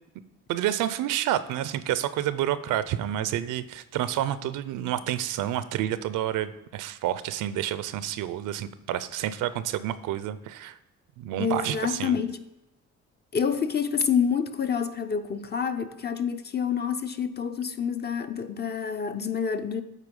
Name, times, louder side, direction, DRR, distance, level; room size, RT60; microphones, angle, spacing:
voice 1, 0.5-10.8 11.2-12.2, right 12 dB, 85° right, 0.5 m, -29 dB
voice 2, 11.4-12.4 13.3-19.8, left 7 dB, 35° left, 0.6 m, -27 dB
8.2 x 4.5 x 5.3 m
cardioid pair, 90°, 30 cm